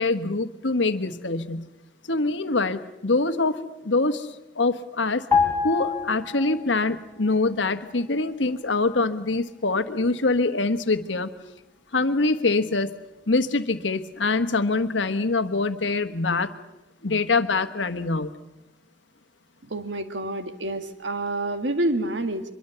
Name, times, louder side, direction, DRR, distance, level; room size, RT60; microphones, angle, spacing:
voice 1, 0.0-1.7 2.1-5.3 5.6-11.3 11.9-12.9 13.3-16.5 17.0-18.3, left 3 dB, 85° left, 9 dB, 1.3 m, -24 dB
sound 1, 5.3-6.9 7.2-7.4, left 6 dB, 15° left, 3.4 m, -25 dB
voice 2, 19.7-22.4, right 1 dB, 80° right, 8 dB, 1.9 m, -28 dB
24.5 x 23.0 x 6.9 m, 0.95 s
head